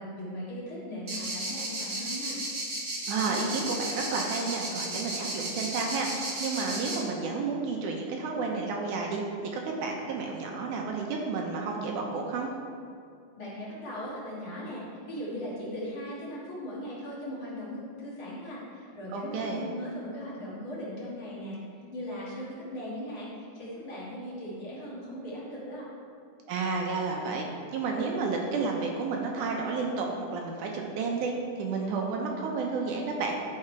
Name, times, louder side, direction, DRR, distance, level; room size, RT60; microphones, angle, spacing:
voice 1, 0.0-2.4 13.4-25.9, equal, 50° left, -7 dB, 1.8 m, -38 dB
sound 1, 1.1-7.0, right 2 dB, 50° right, 1.1 m, -34 dB
voice 2, 3.1-9.2 9.5-12.5 19.1-19.7 26.5-27.5 27.7-33.3, right 4 dB, 75° right, 0 dB, 2.0 m, -31 dB
10.5 x 4.8 x 4.4 m, 2.4 s
omnidirectional pair, 4.0 m